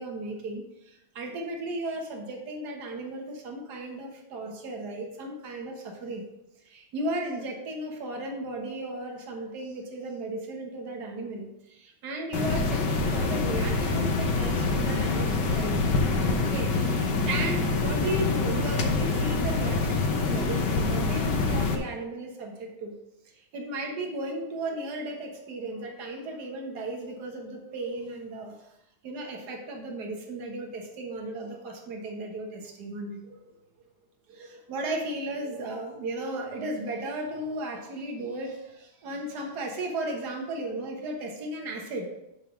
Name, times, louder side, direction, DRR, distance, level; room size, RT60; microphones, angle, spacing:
voice 1, 0.0-6.3 6.7-15.8 16.4-22.9 23.5-28.6 29.0-33.4 34.3-42.1, right 1 dB, 70° right, 1 dB, 1.8 m, -35 dB
sound 1, 12.3-21.7, left 3 dB, 80° left, 1.7 m, -26 dB
9.8 x 3.5 x 5.9 m, 0.89 s
omnidirectional pair, 1.8 m